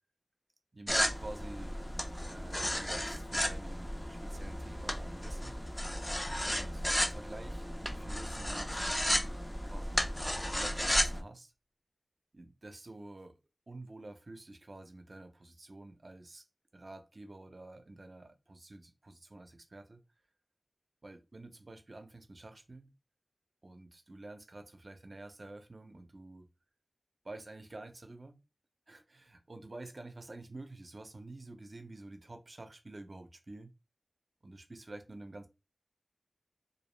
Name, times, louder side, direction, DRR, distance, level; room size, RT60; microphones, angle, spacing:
voice 1, 0.7-1.8 2.2-5.6 6.4-9.4 9.7-10.2 10.5-11.5 12.3-13.4 13.7-16.5 16.7-20.0 21.0-22.9 23.6-26.5 27.2-28.3 28.9-33.7 34.4-35.5, right 2 dB, 60° right, 0.5 m, -49 dB
sound 1, 0.9-11.2, equal, 20° left, 0.5 m, -34 dB
2.6 x 2.0 x 3.0 m
wide cardioid pair, 50°, 0 cm